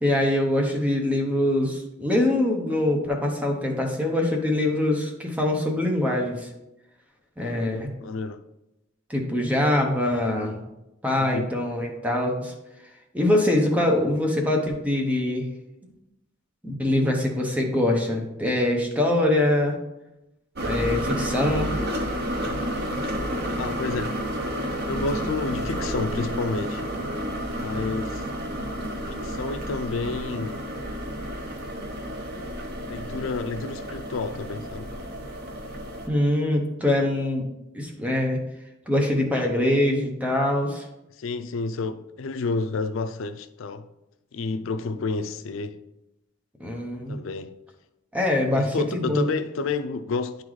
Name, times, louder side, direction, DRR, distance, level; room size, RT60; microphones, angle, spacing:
voice 1, 0.0-6.5 7.4-7.9 9.1-10.6 11.0-12.5 13.1-15.5 16.6-19.8 20.6-21.7 36.1-37.4 37.7-38.4 38.9-40.8 46.6-47.2 48.1-49.2, left 1 dB, 5° right, 0.8 m, -23 dB
voice 2, 7.4-8.4 11.2-11.5 23.6-24.2 24.9-26.8 27.6-28.2 29.1-30.6 32.9-34.9 41.2-43.9 44.3-45.8 47.1-47.6 48.6-50.4, left 3 dB, 80° left, 0.4 m, -30 dB
sound 1, 20.5-36.1, equal, 55° right, 0.8 m, -30 dB
9.9 x 3.9 x 3.1 m
head